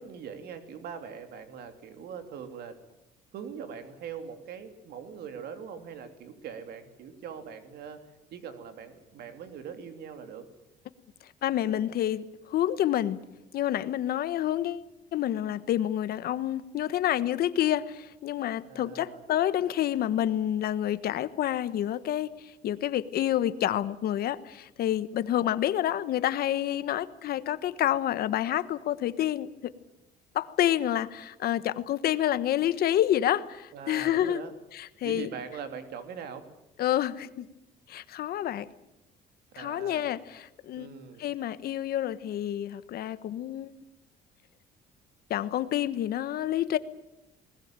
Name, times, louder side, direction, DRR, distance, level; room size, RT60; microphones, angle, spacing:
voice 1, 0.0-2.8 3.3-8.0 8.3-10.5 18.7-19.2 33.7-34.5 35.0-36.5 39.5-40.0 40.7-41.3, right 7 dB, 70° right, 8 dB, 3.0 m, -42 dB
voice 2, 11.4-13.2 13.5-14.8 15.1-29.7 30.3-34.4 34.7-35.3 36.8-37.5 37.9-38.7 39.5-40.9 41.2-43.7 45.3-46.8, left 12 dB, 65° left, 14 dB, 1.2 m, -28 dB
20.5 x 20.0 x 9.0 m, 0.89 s
cardioid pair, 110°, 17 cm